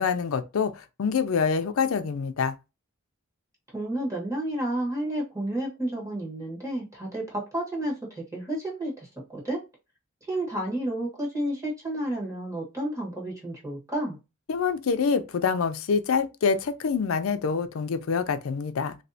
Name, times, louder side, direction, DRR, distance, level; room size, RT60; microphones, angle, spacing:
voice 1, 0.0-2.5 14.5-19.0, left 5 dB, 75° left, 0.4 m, -26 dB
voice 2, 3.7-9.6 10.3-14.2, right 1 dB, 15° right, 1.3 m, -31 dB
3.1 x 2.7 x 2.7 m
head